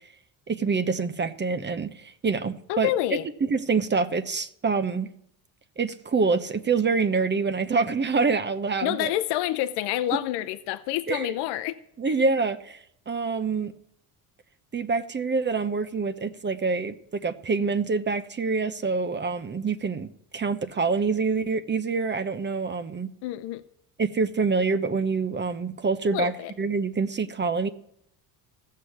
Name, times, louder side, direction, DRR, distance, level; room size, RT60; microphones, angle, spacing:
voice 1, 0.5-2.9 3.4-5.1 5.8-9.1 11.1-11.3 12.0-12.8 13.1-13.7 14.7-23.1 24.0-26.3 26.6-27.7, right 4 dB, 25° right, 0.8 m, -26 dB
voice 2, 2.7-3.3 8.8-11.7 12.1-12.2 23.2-23.6 26.0-26.5, left 14 dB, 85° left, 0.7 m, -28 dB
15.0 x 6.6 x 7.2 m
cardioid pair, 90°, 40 cm